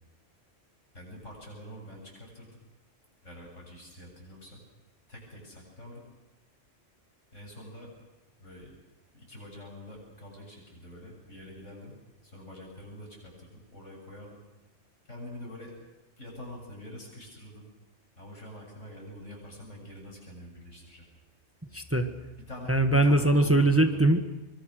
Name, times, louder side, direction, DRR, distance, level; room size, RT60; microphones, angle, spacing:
voice 1, 0.9-2.6 3.2-4.6 5.1-6.0 7.3-7.9 8.4-8.8 9.1-14.4 15.1-15.7 16.2-17.7 18.2-21.1 22.5-24.0, left 1 dB, 90° left, 0 dB, 8.1 m, -45 dB
voice 2, 21.7-22.1 22.7-24.2, right 1 dB, 10° right, 7 dB, 1.4 m, -22 dB
25.0 x 23.5 x 6.5 m, 1.1 s
omnidirectional pair, 1.2 m